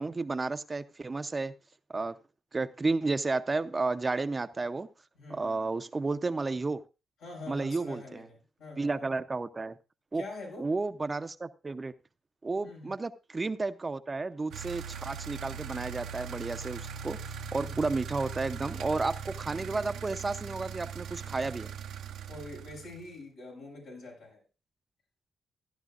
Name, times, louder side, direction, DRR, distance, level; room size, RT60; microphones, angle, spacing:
voice 1, 0.0-1.5 1.9-2.2 2.5-4.9 5.3-6.8 7.5-8.2 8.8-9.8 10.1-10.2 10.6-11.9 12.4-21.7, right 3 dB, 30° right, 11 dB, 0.6 m, -32 dB
voice 2, 5.1-5.7 7.2-9.0 10.1-10.7 12.6-12.9 17.6-17.9 22.3-24.4, left 2 dB, 85° left, -2 dB, 6.5 m, -45 dB
sound 1, 14.5-23.1, right 7 dB, 85° right, 0.8 m, -40 dB
14.5 x 10.5 x 2.5 m, 0.29 s
cardioid pair, 75°, 0 cm